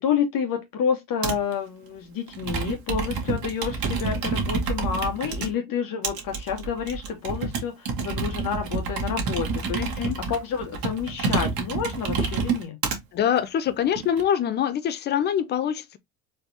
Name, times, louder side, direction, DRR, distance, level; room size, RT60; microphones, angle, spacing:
voice 1, 0.0-9.8 10.3-12.8, left 7 dB, 40° left, 1.1 m, -29 dB
Computer keyboard, 1.2-1.5 2.3-5.5 6.0-13.0 13.7-14.2, right 4 dB, 45° right, 1.5 m, -28 dB
voice 2, 9.7-10.2 13.1-16.0, left 9 dB, 25° left, 0.3 m, -25 dB
4.2 x 3.4 x 2.6 m
figure-of-eight pair, 65°, 50 cm